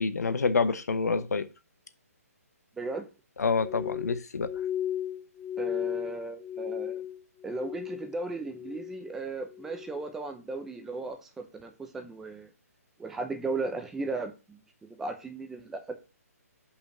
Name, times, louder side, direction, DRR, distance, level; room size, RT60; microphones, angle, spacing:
voice 1, 0.0-1.5 3.4-4.5, left 4 dB, 85° left, 1.0 m, -27 dB
voice 2, 2.8-3.1 5.6-7.0 7.4-12.5 13.0-15.8, right 3 dB, 5° right, 0.6 m, -36 dB
Glass, 3.6-8.2 8.4-9.1 9.5-10.0 10.6-10.9, left 10 dB, 10° left, 1.4 m, -36 dB
5.5 x 4.9 x 6.4 m
hypercardioid pair, 170°, 9 cm